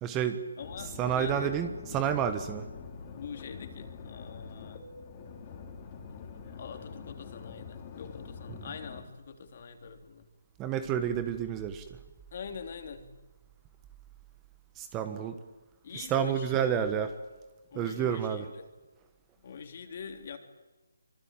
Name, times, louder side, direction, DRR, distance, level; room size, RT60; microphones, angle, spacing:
voice 1, 0.0-0.4 1.0-2.7 10.6-11.8 14.8-15.4 16.1-17.1 17.7-18.4, right 8 dB, 15° right, 10 dB, 1.4 m, -29 dB
voice 2, 0.6-1.5 3.1-4.9 6.1-10.3 12.3-13.1 15.8-16.9 17.7-18.7 19.4-20.4, left 6 dB, 40° left, 6 dB, 3.5 m, -44 dB
sound 1, 0.6-9.0, left 5 dB, 25° left, 3.7 m, -45 dB
25.0 x 24.5 x 9.2 m, 1.2 s
hypercardioid pair, 160°, 0 cm